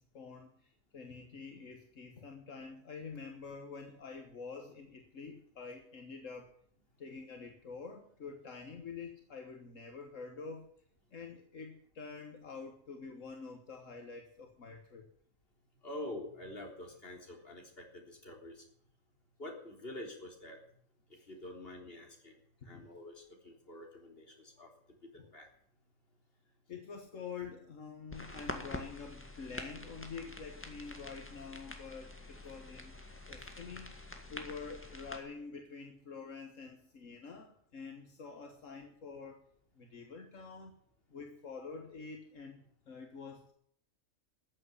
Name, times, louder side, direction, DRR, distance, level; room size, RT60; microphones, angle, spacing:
voice 1, 0.0-6.5 7.0-10.7 11.1-15.1 21.1-21.2 22.7-22.9 25.1-25.3 26.7-32.9 33.3-34.0 34.3-39.4 39.8-40.7 41.1-43.5, left 5 dB, 75° left, 4 dB, 1.9 m, -47 dB
voice 2, 15.8-18.6 19.4-20.6 21.1-22.4 22.7-24.7 25.0-25.5, left 1 dB, 50° left, 1 dB, 3.9 m, -47 dB
sound 1, 28.1-35.2, left 1 dB, 10° left, 1.8 m, -46 dB
14.0 x 8.2 x 9.8 m, 0.65 s
omnidirectional pair, 1.3 m